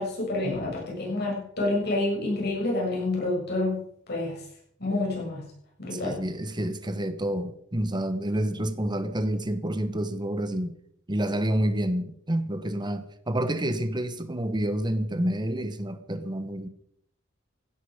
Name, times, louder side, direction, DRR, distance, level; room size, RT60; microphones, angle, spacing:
voice 1, 0.0-3.8 4.1-4.4 4.8-5.5 5.8-6.2, left 2 dB, 55° left, 7.2 m, -28 dB
voice 2, 5.8-10.7 11.1-16.7, right 1 dB, 20° right, 1.1 m, -28 dB
15.5 x 12.5 x 5.1 m
head